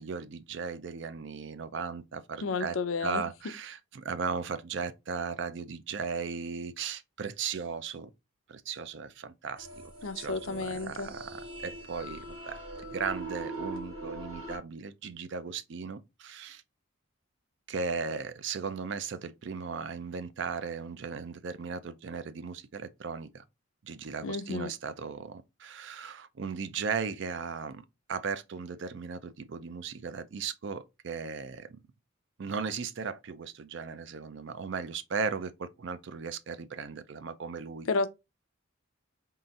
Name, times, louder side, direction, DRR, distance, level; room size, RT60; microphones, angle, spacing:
voice 1, 0.0-8.1 8.5-12.6 12.9-16.6 17.7-23.4 23.8-31.8 32.4-37.9, right 5 dB, 60° right, 0.4 m, -37 dB
voice 2, 2.4-3.2 10.0-11.1 24.2-24.7 37.9-38.1, left 4 dB, 75° left, 0.5 m, -31 dB
sound 1, 9.6-14.6, right 2 dB, 90° right, 1.5 m, -41 dB
3.8 x 2.5 x 4.0 m
head